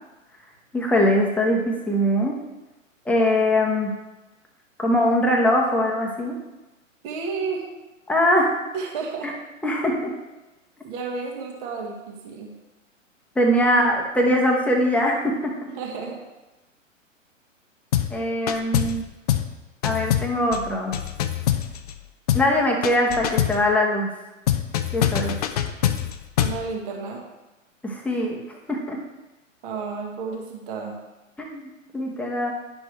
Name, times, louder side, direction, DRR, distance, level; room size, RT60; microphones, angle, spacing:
voice 1, 0.7-2.4 3.1-3.9 4.8-6.4 8.1-8.5 9.2-9.3 9.6-10.1 13.3-15.5 18.1-19.0 19.8-21.0 22.3-24.2 24.9-25.3 27.8-29.0 31.4-32.5, left 1 dB, 5° left, -1 dB, 1.0 m, -22 dB
voice 2, 7.0-7.6 8.7-9.3 10.8-12.5 15.8-16.2 26.4-27.2 29.6-31.0, right 4 dB, 40° right, 1 dB, 1.5 m, -31 dB
sound 1, 17.9-18.2 18.5-19.0 19.3-19.5 19.8-22.0 22.3-22.5 22.8-23.6 24.5-26.6, left 11 dB, 30° left, 0.4 m, -24 dB
9.9 x 6.1 x 3.2 m, 1.1 s
hypercardioid pair, 120°, 40 cm